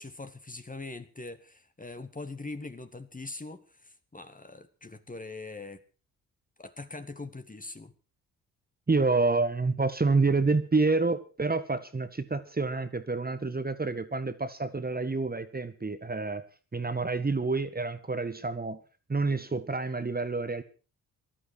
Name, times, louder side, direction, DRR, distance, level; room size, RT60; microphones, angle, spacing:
voice 1, 0.0-5.8 6.6-7.9, left 3 dB, 20° left, 9 dB, 1.8 m, -42 dB
voice 2, 8.9-16.4 16.7-18.8 19.1-20.6, right 3 dB, 20° right, 10 dB, 1.7 m, -28 dB
20.0 x 12.5 x 4.7 m, 0.37 s
figure-of-eight pair, 40°, 44 cm